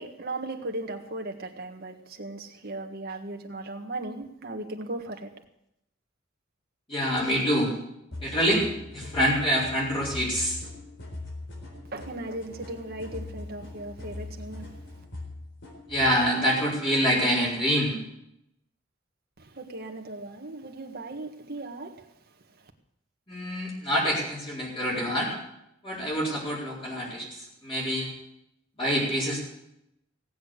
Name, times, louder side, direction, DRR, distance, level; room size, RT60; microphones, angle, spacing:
voice 1, 0.0-5.3 11.9-14.7 19.4-22.1 22.5-22.7, right 2 dB, 50° right, 1.7 m, -37 dB
voice 2, 6.9-7.7 8.2-8.6 8.9-10.6 15.9-18.0 23.3-25.3 25.8-28.1 28.8-29.4, equal, 30° left, 4.4 m, -26 dB
sound 1, 8.1-16.2, left 2 dB, 65° left, 4.1 m, -41 dB
17.5 x 8.5 x 8.1 m
head